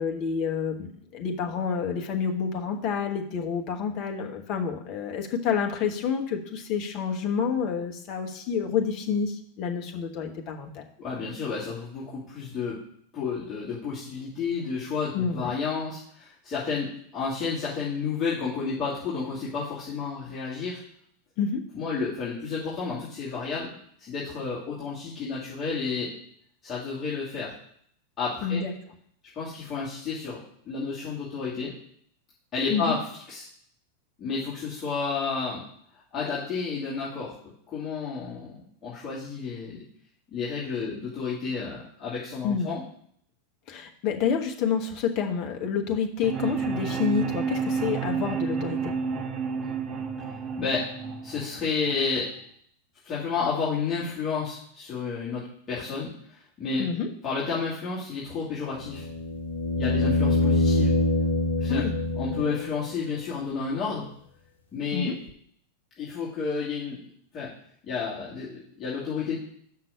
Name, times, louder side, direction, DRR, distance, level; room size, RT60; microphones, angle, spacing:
voice 1, 0.0-10.8 15.1-15.5 21.4-21.6 28.4-28.7 32.7-32.9 42.4-42.7 43.7-48.9 56.8-57.1 61.7-61.9 64.9-65.2, left 6 dB, 40° left, 2 dB, 1.2 m, -28 dB
voice 2, 11.0-12.8 13.1-20.8 21.7-23.7 24.0-26.1 26.6-27.5 28.2-28.6 29.3-31.7 32.5-33.0 33.3-33.5 34.2-35.6 36.1-37.4 37.7-39.8 40.3-42.8 50.5-50.9 51.2-52.3 53.0-56.8 57.2-59.1 59.8-61.0 61.6-61.8 62.2-64.1 64.7-65.1 66.0-67.0 67.3-67.5 67.8-69.4, left 5 dB, 25° left, -9 dB, 2.5 m, -31 dB
sound 1, 46.2-52.2, right 6 dB, 25° right, 0.8 m, -30 dB
sound 2, 58.8-62.9 65.3-65.4, left 2 dB, 70° left, 1.0 m, -25 dB
6.0 x 5.8 x 6.5 m, 0.66 s
figure-of-eight pair, 90°, 0 cm